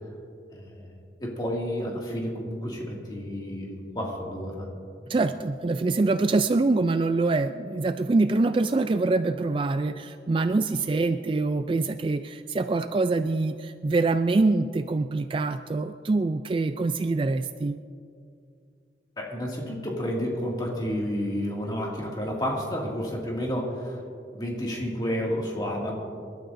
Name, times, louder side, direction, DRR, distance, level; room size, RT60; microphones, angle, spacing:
voice 1, 0.5-0.9 1.2-4.7 19.2-24.0 24.3-25.9, equal, 25° left, -2 dB, 2.3 m, -30 dB
voice 2, 5.1-17.8, right 3 dB, 30° right, 9 dB, 0.3 m, -25 dB
26.5 x 12.5 x 2.6 m, 2.4 s
head